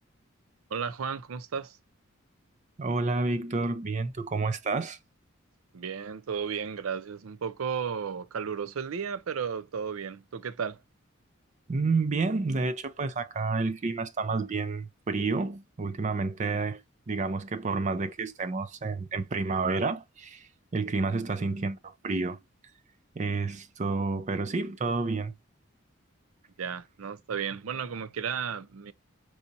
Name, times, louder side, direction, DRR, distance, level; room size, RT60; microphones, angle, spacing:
voice 1, 0.7-1.8 5.7-10.8 26.6-28.9, right 6 dB, 90° right, 0.5 m, -34 dB
voice 2, 2.8-5.0 11.7-16.8 17.1-22.4 23.2-25.3, right 3 dB, 35° right, 0.4 m, -30 dB
4.7 x 2.8 x 2.5 m
head